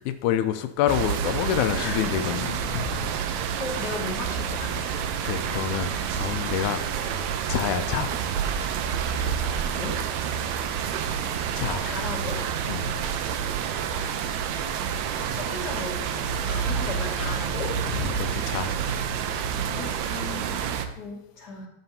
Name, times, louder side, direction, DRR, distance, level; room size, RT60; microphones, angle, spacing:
voice 1, 0.1-3.1 5.2-6.9 7.5-8.1 11.6-11.8 12.7-12.9 17.9-18.7, left 10 dB, 90° left, 9 dB, 2.0 m, -27 dB
sound 1, 0.9-20.9, right 7 dB, 80° right, 1.9 m, -28 dB
voice 2, 3.6-4.9 9.7-10.0 11.8-12.4 15.2-17.7 19.7-21.7, left 3 dB, 35° left, -4 dB, 2.5 m, -36 dB
13.0 x 6.9 x 2.8 m, 0.89 s
omnidirectional pair, 3.3 m